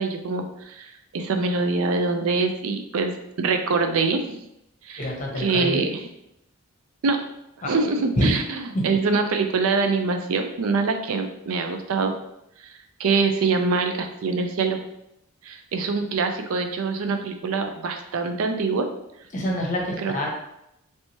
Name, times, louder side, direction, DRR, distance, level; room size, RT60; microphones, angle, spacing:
voice 1, 0.0-3.1 3.4-4.4 4.8-5.1 5.4-6.1 7.0-7.2 7.6-12.2 13.0-14.8 15.4-18.9 20.0-20.2, right 4 dB, 75° right, 6 dB, 0.4 m, -24 dB
voice 2, 5.0-5.9 7.6-7.7 8.2-8.4 8.7-9.0 19.3-20.3, equal, 35° left, -1 dB, 0.8 m, -26 dB
3.3 x 3.0 x 2.9 m, 0.81 s
head